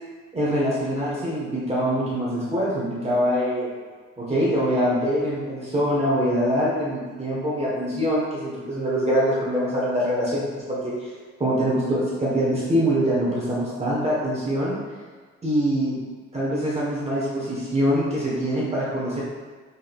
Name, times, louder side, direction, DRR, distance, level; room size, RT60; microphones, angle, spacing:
voice 1, 0.3-3.8 4.2-11.1 11.4-14.8 15.4-16.0 16.3-19.2, equal, 20° right, -7 dB, 1.2 m, -24 dB
5.5 x 3.7 x 2.4 m, 1.5 s
cardioid pair, 90°, 30 cm